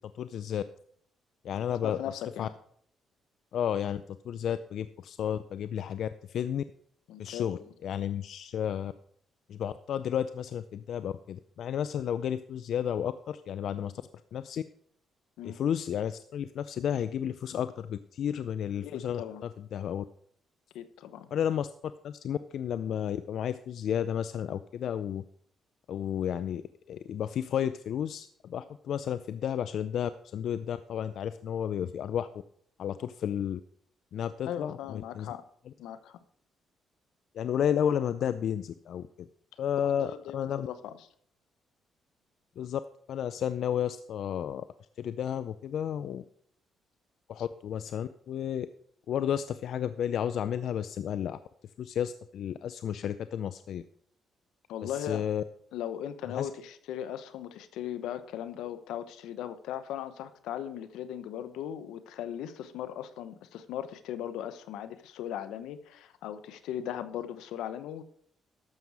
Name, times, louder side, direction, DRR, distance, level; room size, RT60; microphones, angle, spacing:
voice 1, 0.1-0.6 1.4-2.0 2.4-2.5 3.5-6.6 7.2-8.9 9.5-13.9 14.3-14.6 15.4-20.0 21.3-21.7 22.0-25.2 25.9-26.6 26.9-32.4 32.8-33.6 34.1-35.3 37.3-39.3 39.6-40.7 42.6-42.8 43.1-44.7 45.0-46.2 47.3-48.7 49.1-51.4 51.8-53.8 54.8-55.4 56.3-56.5, left 9 dB, 70° left, 13 dB, 0.4 m, -32 dB
voice 2, 1.8-2.5 7.1-7.7 15.4-15.6 18.8-19.4 20.7-21.3 34.4-35.4 35.8-36.2 39.8-41.0 54.7-55.3 55.7-68.0, left 10 dB, 90° left, 12 dB, 0.8 m, -38 dB
12.0 x 7.2 x 4.7 m, 0.63 s
cardioid pair, 90°, 0 cm